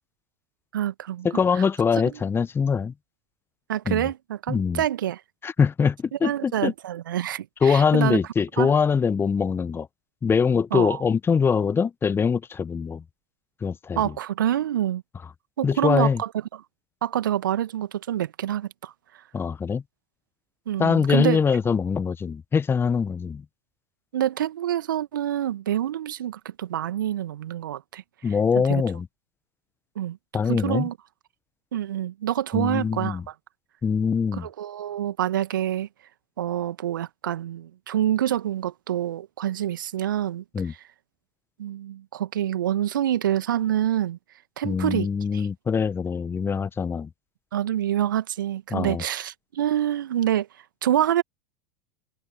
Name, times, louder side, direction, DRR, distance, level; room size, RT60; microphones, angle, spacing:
voice 1, 0.7-1.3 1.6-1.7 3.7-5.2 6.2-8.2 8.6-8.7 10.7-11.0 14.0-15.0 15.6-16.3 17.0-18.9 20.7-21.4 24.1-28.0 28.7-28.8 30.0-30.2 30.5-30.9 31.7-33.2 34.4-35.9 36.4-40.4 41.6-44.2 44.6-45.5 47.5-50.5 50.8-51.2, right 11 dB, 70° right, 2.0 m, -26 dB
voice 2, 1.2-2.9 3.9-4.0 4.5-4.8 5.4-6.7 7.6-9.9 10.2-13.0 13.6-14.1 15.6-16.2 19.3-19.8 20.8-23.4 28.2-29.1 30.3-30.9 32.5-33.2 33.8-34.5 40.5-40.7 44.6-47.1 48.7-49.0, left 6 dB, 20° left, 1.3 m, -23 dB
figure-of-eight pair, 80°, 11 cm